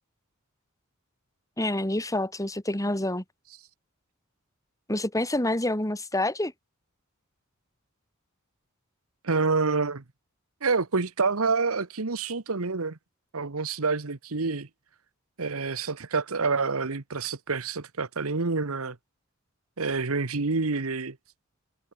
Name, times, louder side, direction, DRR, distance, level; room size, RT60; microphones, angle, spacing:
voice 1, 1.6-3.2 4.9-6.5, left 1 dB, 15° left, 2.9 m, -27 dB
voice 2, 9.2-10.0 10.6-13.0 13.3-14.7 15.4-19.0 19.8-21.2, right 4 dB, 80° right, 1.2 m, -27 dB
head